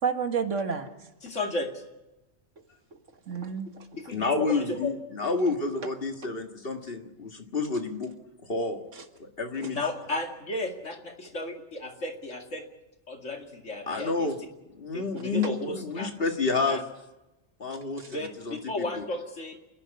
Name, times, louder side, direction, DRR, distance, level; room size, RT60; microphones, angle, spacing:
voice 1, 0.0-0.9 3.3-3.9 9.6-9.7 17.7-18.1, right 6 dB, 85° right, 6 dB, 1.9 m, -30 dB
voice 2, 1.2-1.8 4.0-4.9 9.7-12.7 13.1-14.3 14.9-16.1 16.7-16.8 18.1-19.6, left 2 dB, 80° left, 3 dB, 2.7 m, -34 dB
voice 3, 4.1-8.1 8.5-8.8 9.2-9.8 13.9-14.3 14.8-16.8 17.6-19.0, left 3 dB, 50° left, 4 dB, 2.0 m, -29 dB
28.0 x 11.0 x 9.7 m, 1.0 s
omnidirectional pair, 1.2 m